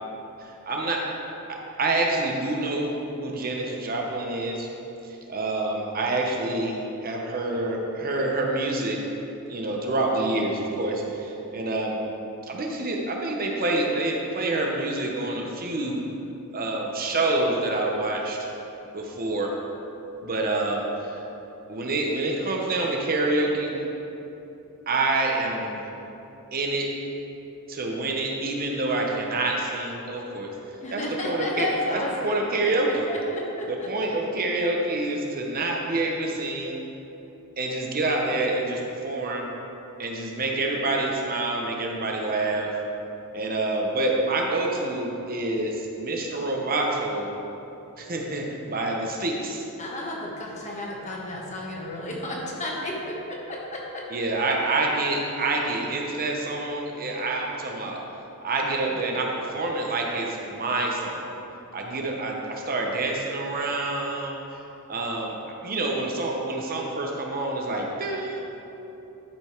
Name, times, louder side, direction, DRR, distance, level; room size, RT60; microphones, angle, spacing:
voice 1, 0.4-1.1 1.5-2.9 3.2-4.7 5.0-9.0 9.5-12.0 12.4-16.0 16.5-18.5 18.9-19.6 20.2-21.2 21.7-23.8 24.9-25.8 26.5-26.9 27.7-30.5 30.9-33.0 33.7-36.8 37.6-39.5 40.0-42.7 43.3-47.3 48.0-49.6 54.1-58.0 58.4-61.3 61.7-64.4 64.9-65.4 65.6-68.4, right 2 dB, 40° right, 0 dB, 0.9 m, -27 dB
voice 2, 30.8-32.7 33.1-33.9 49.8-54.0, left 1 dB, 30° left, -2 dB, 1.4 m, -32 dB
12.0 x 5.3 x 4.5 m, 3.0 s
head